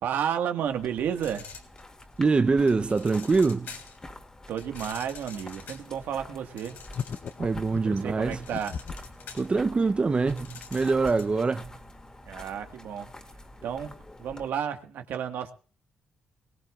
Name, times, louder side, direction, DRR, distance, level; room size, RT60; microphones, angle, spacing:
voice 1, 0.0-1.4 4.5-6.8 7.8-8.8 12.2-13.1 13.6-13.9 14.2-15.5, right 8 dB, 80° right, 1.6 m, -32 dB
sound 1, 0.7-14.5, left 1 dB, 20° left, 2.3 m, -47 dB
sound 2, 1.1-2.2 2.7-4.0 4.6-7.5 7.8-11.4, left 6 dB, 80° left, 3.3 m, -46 dB
voice 2, 2.2-3.7 7.4-8.4 9.3-11.7, right 4 dB, 35° right, 0.7 m, -24 dB
sound 3, 6.9-9.1, left 7 dB, 55° left, 0.8 m, -36 dB
22.5 x 17.5 x 2.4 m
supercardioid pair, 65°, 3 cm